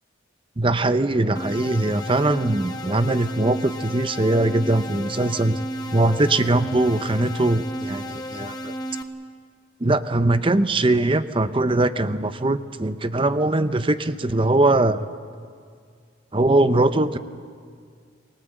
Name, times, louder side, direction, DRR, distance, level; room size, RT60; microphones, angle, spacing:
voice 1, 0.6-5.6 5.9-8.7 9.8-15.1 16.3-17.2, right 2 dB, 25° right, 12 dB, 0.7 m, -21 dB
sound 1, 1.4-9.0, equal, 20° left, 1.4 m, -33 dB
27.0 x 18.5 x 7.8 m, 2.1 s
head